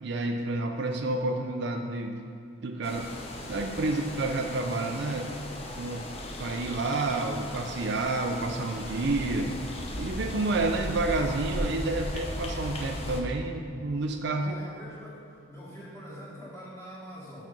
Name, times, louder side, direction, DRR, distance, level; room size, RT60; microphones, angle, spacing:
voice 1, 0.0-2.2 2.6-3.1 3.5-5.3 5.8-6.1 6.4-9.5 10.0-14.5, right 2 dB, 55° right, 4 dB, 0.4 m, -29 dB
sound 1, 2.8-13.2, left 1 dB, 30° left, 0.7 m, -37 dB
voice 2, 14.4-17.4, equal, 15° left, -6 dB, 1.6 m, -44 dB
6.1 x 5.8 x 5.2 m, 2.5 s
head